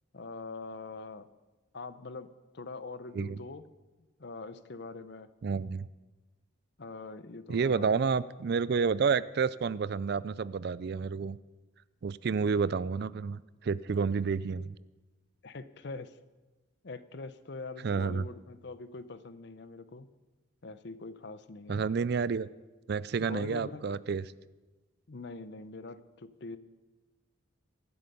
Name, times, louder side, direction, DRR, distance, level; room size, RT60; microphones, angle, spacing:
voice 1, 0.1-1.3 1.7-3.6 4.2-5.3 6.8-7.9 15.4-16.2 16.8-20.1 20.6-21.8 23.2-24.0 25.1-26.6, left 3 dB, 55° left, 13 dB, 0.7 m, -43 dB
voice 2, 5.4-5.9 7.5-11.4 12.0-14.8 17.8-18.2 21.7-22.5 22.9-24.2, right 5 dB, 50° right, 19 dB, 0.4 m, -30 dB
23.5 x 7.9 x 5.5 m, 1.1 s
head